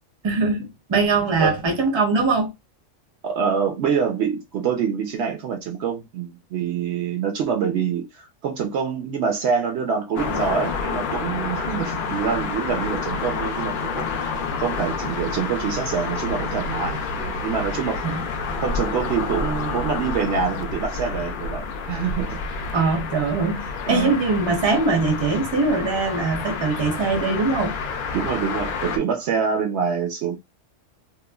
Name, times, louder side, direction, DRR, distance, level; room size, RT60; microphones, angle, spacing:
voice 1, 0.2-2.5 18.0-18.2 22.7-27.7, right 3 dB, 30° right, 0.6 m, -22 dB
voice 2, 3.2-14.1 14.6-18.1 18.6-22.4 23.9-24.1 28.1-30.4, right 6 dB, 65° right, 0.8 m, -25 dB
sound 1, 10.1-29.0, left 4 dB, 60° left, 0.5 m, -29 dB
3.0 x 2.2 x 2.2 m
omnidirectional pair, 1.3 m